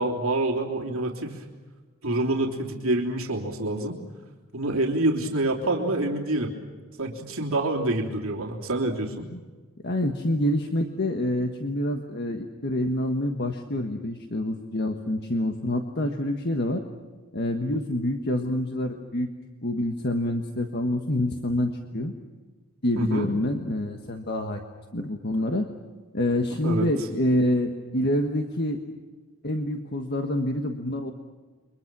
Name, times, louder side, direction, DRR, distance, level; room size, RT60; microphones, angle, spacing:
voice 1, 0.0-1.4 2.0-4.0 4.5-6.5 7.0-9.1 22.9-23.3 26.6-26.9, right 2 dB, 65° right, -1 dB, 3.3 m, -26 dB
voice 2, 9.8-16.8 17.3-19.3 19.6-22.1 22.8-24.6 24.9-25.7 26.1-28.8 29.4-31.1, left 1 dB, 50° left, 4 dB, 1.5 m, -27 dB
29.5 x 24.0 x 6.2 m, 1.4 s
head